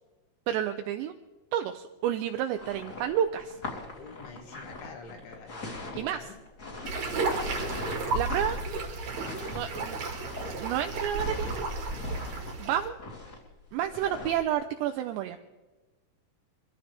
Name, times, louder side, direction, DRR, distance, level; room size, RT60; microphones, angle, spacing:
voice 1, 0.5-1.1 1.5-3.6 5.9-6.2 8.1-8.6 9.4-10.0 10.6-11.5 12.6-13.0 13.7-15.4, right 10 dB, 80° right, 6 dB, 2.8 m, -30 dB
sound 1, 2.6-14.5, left 2 dB, 25° left, 3.0 m, -41 dB
voice 2, 3.9-6.4 7.1-7.7, left 4 dB, 85° left, 3 dB, 4.4 m, -47 dB
sound 2, 6.8-12.9, right 3 dB, 50° right, 2.4 m, -33 dB
24.5 x 15.0 x 3.5 m, 1.1 s
omnidirectional pair, 5.3 m